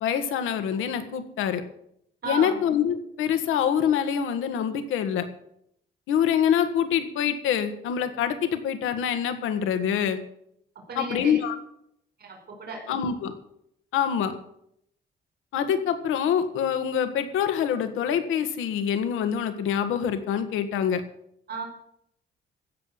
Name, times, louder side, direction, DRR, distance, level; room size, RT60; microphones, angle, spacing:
voice 1, 0.0-1.6 2.3-5.2 6.1-10.2 11.0-11.6 12.9-13.3 13.9-14.3 15.5-21.0, left 8 dB, 90° left, 9 dB, 1.5 m, -25 dB
voice 2, 2.2-2.6 10.7-11.4 12.2-12.9 21.5-21.6, right 4 dB, 55° right, 2 dB, 4.5 m, -35 dB
15.0 x 5.6 x 9.0 m, 0.73 s
cardioid pair, 90°, 20 cm